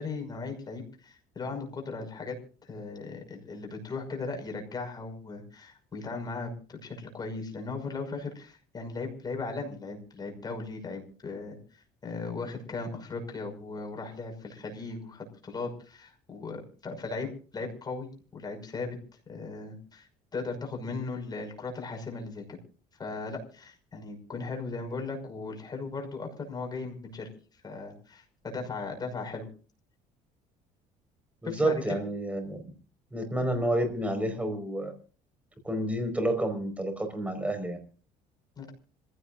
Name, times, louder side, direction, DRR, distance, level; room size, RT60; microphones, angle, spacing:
voice 1, 0.0-2.4 2.6-11.6 12.0-19.0 19.3-22.6 23.0-27.3 27.6-29.5 31.4-32.0 38.6-38.7, left 3 dB, 25° left, 3 dB, 5.8 m, -37 dB
voice 2, 31.4-32.6 33.1-34.9 35.6-37.8, right 1 dB, 10° right, 7 dB, 4.9 m, -29 dB
26.5 x 16.5 x 2.6 m, 0.40 s
cardioid pair, 125°, 16 cm